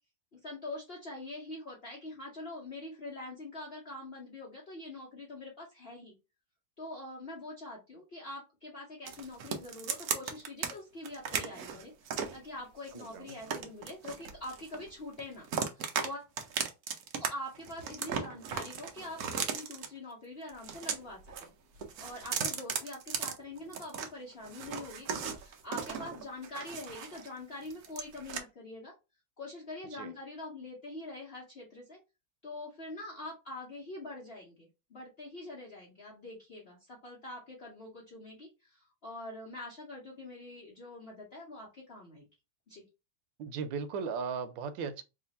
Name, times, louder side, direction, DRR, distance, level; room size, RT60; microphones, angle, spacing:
voice 1, 0.3-6.1 6.8-15.5 15.7-16.3 17.2-21.5 22.0-28.9 29.4-32.0 32.4-42.2 42.7-42.8, left 2 dB, 45° left, 0.9 m, -44 dB
sound 1, 9.1-10.7 11.0-12.4 12.9-14.9 15.2-16.1 16.4-17.3 17.5-19.9 20.5-21.5 21.8-24.1 24.4-27.3 27.6-28.4, right 7 dB, 65° right, 1.1 m, -36 dB
voice 2, 12.9-13.3 29.9-30.1 43.4-45.0, right 5 dB, 90° right, 1.3 m, -37 dB
3.3 x 2.5 x 4.0 m
omnidirectional pair, 2.0 m